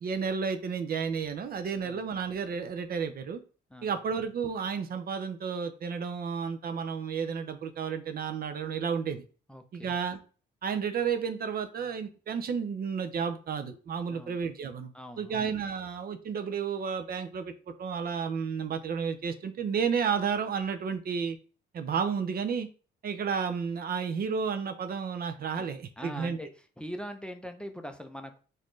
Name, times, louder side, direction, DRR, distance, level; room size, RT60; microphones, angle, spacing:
voice 1, 0.0-3.4 3.8-9.2 9.7-10.2 10.6-17.5 17.8-21.4 21.7-22.7 23.0-26.4, right 6 dB, 50° right, 8 dB, 0.5 m, -32 dB
voice 2, 9.5-9.9 14.1-14.4 14.9-15.5 25.6-25.7 26.0-26.5 26.8-28.4, equal, 5° left, 7 dB, 0.5 m, -42 dB
4.1 x 2.5 x 3.1 m, 0.38 s
cardioid pair, 90°, 20 cm